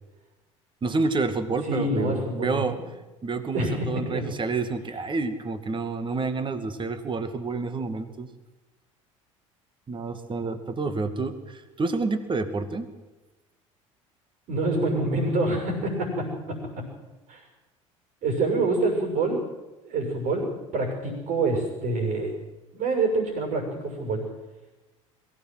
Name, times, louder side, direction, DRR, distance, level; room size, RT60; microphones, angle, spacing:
voice 1, 0.8-2.8 3.2-8.3 9.9-12.9, right 3 dB, 30° right, 10 dB, 2.3 m, -29 dB
voice 2, 1.7-2.6 3.5-4.2 14.5-16.6 17.3-17.4 18.2-19.4 19.8-20.4 20.7-22.3 22.7-24.2, right 2 dB, 55° right, 3 dB, 6.8 m, -26 dB
22.5 x 17.0 x 7.8 m, 1.1 s
figure-of-eight pair, 65°, 17 cm